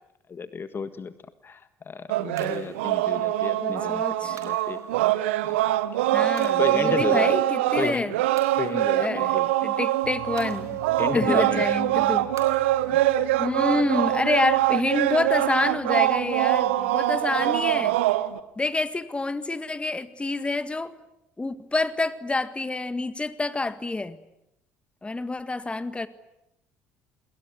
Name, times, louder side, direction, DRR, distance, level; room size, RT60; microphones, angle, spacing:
voice 1, 0.3-1.1 1.4-4.8 5.4-5.6 6.0-7.4 7.7-8.1 8.6-9.5 11.0-11.6 12.9-13.0, left 5 dB, 35° left, 12 dB, 1.5 m, -32 dB
sound 1, 2.1-18.4, right 14 dB, 75° right, 1.2 m, -24 dB
sound 2, 2.4-16.9, right 5 dB, 50° right, 5.9 m, -52 dB
voice 2, 3.6-4.4 6.1-8.1 9.0-9.4 9.6-10.8 11.1-12.3 13.4-18.0 18.6-20.9 21.4-24.2 25.0-26.1, left 2 dB, 15° left, 13 dB, 1.7 m, -27 dB
sound 3, 10.0-18.2, right 1 dB, 90° left, 4.3 m, -48 dB
29.0 x 21.5 x 9.6 m, 0.86 s
hypercardioid pair, 55°, 7 cm